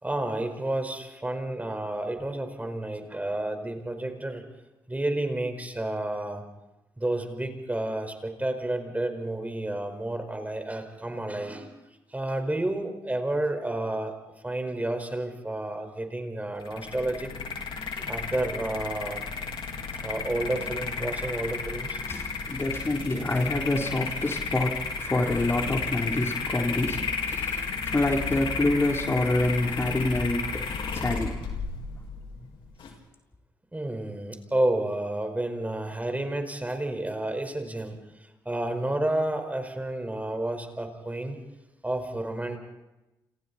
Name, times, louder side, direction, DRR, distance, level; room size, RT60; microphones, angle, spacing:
voice 1, 0.0-4.4 4.9-6.4 7.0-11.7 12.1-14.1 14.4-17.3 17.9-19.2 20.0-22.0 33.7-38.0 38.4-41.4 41.8-42.6, right 1 dB, 15° right, 6 dB, 5.1 m, -30 dB
sound 1, 16.6-32.9, left 4 dB, 65° left, 4.2 m, -33 dB
voice 2, 22.1-30.7 30.9-31.4 31.9-32.0 32.5-32.6, left 2 dB, 25° left, 1 dB, 3.7 m, -27 dB
29.5 x 27.0 x 4.4 m, 0.99 s
hypercardioid pair, 50°, 10 cm